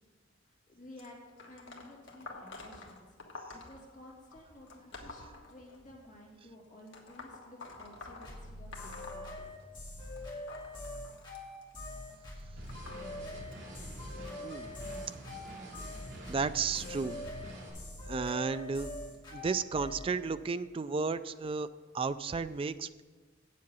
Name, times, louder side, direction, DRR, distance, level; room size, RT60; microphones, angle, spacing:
voice 1, 0.4-1.2 1.4-3.2 3.5-9.6, left 1 dB, 40° left, -3 dB, 2.7 m, -54 dB
sound 1, 1.0-6.1 6.9-9.9 10.2-15.5 16.3-16.6 17.6-17.7 18.6-18.7 19.4-19.5, left 3 dB, 80° left, 1.4 m, -50 dB
sound 2, 8.2-20.1, left 1 dB, 25° left, 2.2 m, -43 dB
sound 3, 12.6-17.7, right 1 dB, 65° right, 3.3 m, -47 dB
voice 2, 16.3-17.2 18.1-18.9 19.3-21.7 21.9-23.0, right 4 dB, 30° right, 13 dB, 0.3 m, -33 dB
8.2 x 7.4 x 6.2 m, 1.3 s
head